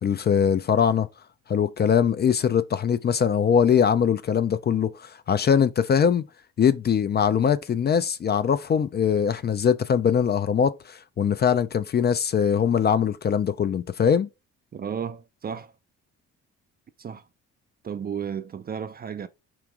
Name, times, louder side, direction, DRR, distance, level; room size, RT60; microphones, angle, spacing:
voice 1, 0.0-1.1 1.5-6.2 6.6-14.3, left 7 dB, 35° left, 0.4 m, -22 dB
voice 2, 14.7-15.7 17.0-17.2 17.8-19.3, right 7 dB, 30° right, 0.4 m, -33 dB
5.0 x 3.0 x 3.5 m
cardioid pair, 90°, 30 cm